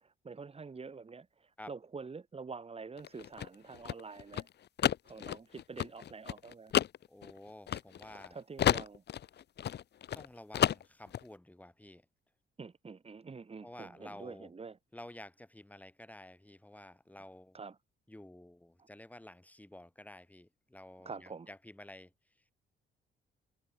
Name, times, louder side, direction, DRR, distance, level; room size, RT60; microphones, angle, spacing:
voice 1, 0.0-4.5 5.0-6.7 8.3-9.0 12.6-14.8 17.5-17.8 21.0-21.5, right 4 dB, 30° right, 3.0 m, -46 dB
sound 1, 3.0-8.3 8.6-10.3 10.5-11.2, left 10 dB, 60° left, 1.1 m, -32 dB
voice 2, 7.1-8.4 10.1-12.0 13.6-14.5 14.9-17.6 18.1-22.1, left 1 dB, 5° left, 7.8 m, -51 dB
cardioid pair, 90°, 20 cm